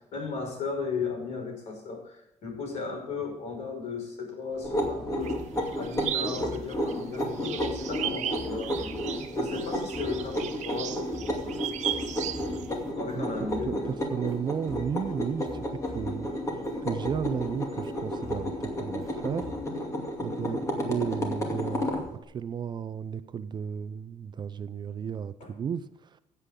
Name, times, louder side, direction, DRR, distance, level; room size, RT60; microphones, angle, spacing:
voice 1, 0.0-5.4 5.8-9.0 9.3-11.8 12.9-14.0 20.4-20.7 25.4-25.5, left 4 dB, 65° left, 2 dB, 5.4 m, -36 dB
sound 1, 4.5-19.6, left 1 dB, ahead, 5.4 m, -47 dB
sound 2, 4.6-22.1, equal, 25° left, 2.4 m, -32 dB
sound 3, 5.2-12.7, right 10 dB, 65° right, 1.2 m, -36 dB
voice 2, 13.1-15.7 15.9-19.8 20.2-26.2, right 7 dB, 35° right, 13 dB, 0.5 m, -34 dB
15.5 x 8.3 x 3.8 m, 0.83 s
cardioid pair, 135°, 13 cm